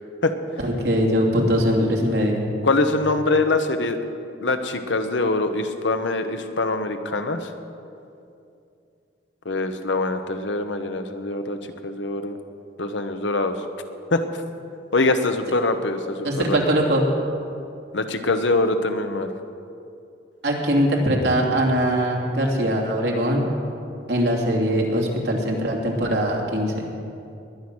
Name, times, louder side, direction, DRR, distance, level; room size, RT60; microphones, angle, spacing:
voice 1, 0.6-2.4 16.2-17.1 20.4-23.5 24.1-26.8, equal, 70° right, -1 dB, 2.9 m, -21 dB
voice 2, 2.6-4.0 4.4-7.5 9.4-12.4 12.8-13.5 14.1-14.2 14.9-16.6 17.9-19.3, left 2 dB, 90° left, 7 dB, 1.2 m, -23 dB
20.5 x 10.5 x 6.3 m, 2.6 s
head